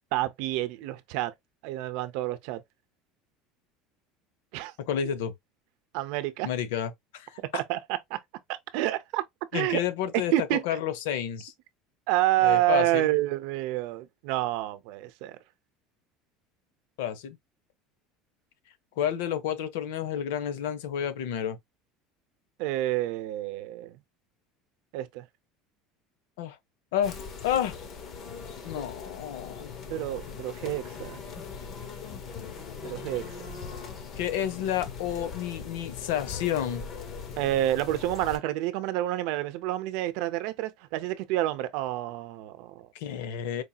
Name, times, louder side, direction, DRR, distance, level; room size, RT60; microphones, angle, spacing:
voice 1, 0.1-1.3 1.6-2.6 4.5-4.7 5.9-6.5 7.5-8.2 8.5-9.2 9.5-9.8 10.3-10.6 12.1-15.4 22.6-24.0 24.9-25.2 29.9-31.2 32.8-33.5 37.4-42.9, right 15 dB, 70° right, 0.6 m, -28 dB
voice 2, 4.8-5.3 6.4-7.4 9.5-10.3 10.6-11.5 12.4-13.1 17.0-17.4 19.0-21.6 26.4-26.6 26.9-27.2 27.4-27.7 28.6-29.7 34.2-36.8 42.9-43.6, left 9 dB, 90° left, 0.8 m, -30 dB
sound 1, 27.0-38.4, left 6 dB, 40° left, 1.1 m, -40 dB
4.6 x 2.7 x 2.3 m
cardioid pair, 150°, 0 cm